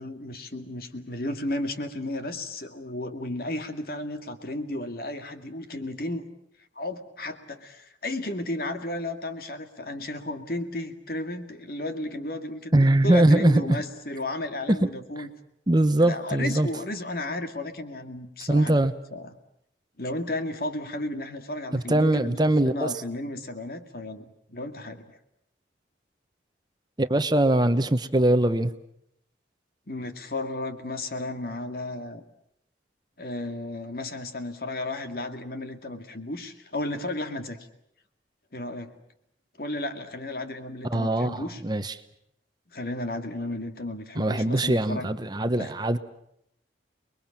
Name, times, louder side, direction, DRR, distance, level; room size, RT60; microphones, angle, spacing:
voice 1, 0.0-6.3 6.8-15.3 16.0-18.8 19.1-19.3 20.0-25.0 29.9-32.2 33.2-37.6 38.5-38.9 39.6-41.6 42.7-45.1 45.6-45.7, left 1 dB, 55° left, 7 dB, 2.2 m, -33 dB
voice 2, 12.7-13.8 14.7-14.9 15.2-15.3 15.7-16.7 18.5-19.0 21.7-23.0 27.0-28.7 40.9-42.0 44.2-46.0, right 1 dB, 25° right, 10 dB, 0.9 m, -22 dB
30.0 x 21.0 x 7.4 m, 0.76 s
head